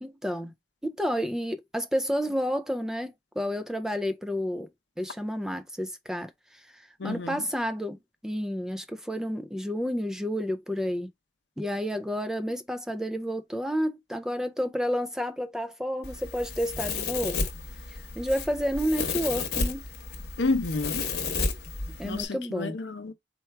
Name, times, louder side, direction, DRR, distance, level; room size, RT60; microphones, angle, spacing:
voice 1, 0.0-0.5 0.8-4.7 5.0-8.0 8.2-11.1 11.6-17.4 17.9-19.9 22.0-22.8, equal, 5° right, 0.3 m, -30 dB
voice 2, 7.0-7.4 20.4-21.1 22.0-23.1, left 3 dB, 80° left, 0.6 m, -30 dB
Domestic sounds home sounds, 16.0-22.2, left 4 dB, 65° left, 1.0 m, -32 dB
4.4 x 2.3 x 4.3 m
head